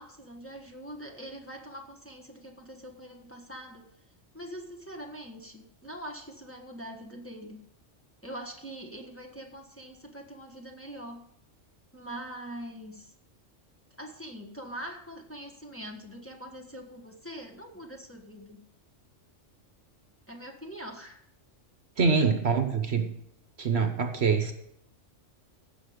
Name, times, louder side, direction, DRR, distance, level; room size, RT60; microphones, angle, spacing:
voice 1, 0.0-3.9 4.3-7.6 8.2-11.2 11.9-13.1 14.0-18.6 20.3-21.2, equal, 10° left, 0 dB, 1.4 m, -43 dB
voice 2, 22.0-23.1 23.6-24.5, right 5 dB, 55° right, 7 dB, 1.2 m, -25 dB
15.5 x 6.0 x 5.1 m, 0.74 s
omnidirectional pair, 1.3 m